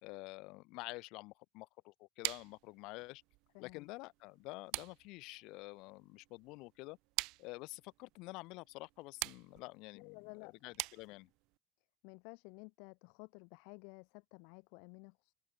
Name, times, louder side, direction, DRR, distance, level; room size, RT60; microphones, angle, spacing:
voice 1, 0.0-3.2 3.6-7.0 7.4-11.3, left 23 dB, 70° left, 2.2 m, -49 dB
sound 1, 2.2-11.6, right 24 dB, 70° right, 2.0 m, -46 dB
voice 2, 3.5-3.9 9.9-10.7 12.0-15.3, left 37 dB, 85° left, 2.3 m, -54 dB
open air
cardioid pair, 165°, 0 cm